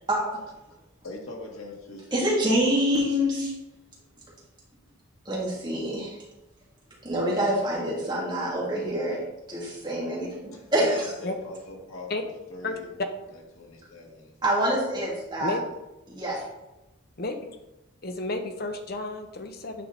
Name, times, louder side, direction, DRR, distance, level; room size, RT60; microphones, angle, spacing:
voice 1, 0.1-0.4 2.1-3.5 5.3-6.2 7.0-9.2 9.5-11.1 14.4-15.6 16.1-16.4, equal, 20° right, -5 dB, 2.3 m, -26 dB
voice 2, 1.0-2.5 10.5-12.9 13.3-14.3, left 2 dB, 90° left, -1 dB, 1.8 m, -42 dB
voice 3, 18.0-19.9, left 2 dB, 50° left, 5 dB, 0.9 m, -31 dB
9.3 x 4.9 x 3.9 m, 0.97 s
head